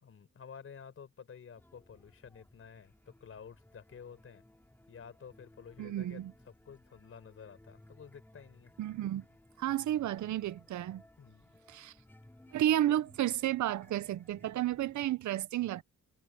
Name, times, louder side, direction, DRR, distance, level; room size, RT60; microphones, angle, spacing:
voice 1, 0.0-4.4 4.9-8.7 11.2-11.5, left 7 dB, 50° left, 4.4 m, -51 dB
sound 1, 1.6-15.1, left 1 dB, 5° left, 2.8 m, -61 dB
voice 2, 5.8-6.3 8.8-9.2 9.6-11.0 11.7-11.9 12.5-15.8, right 13 dB, 70° right, 0.7 m, -32 dB
wide cardioid pair, 150°, 30 cm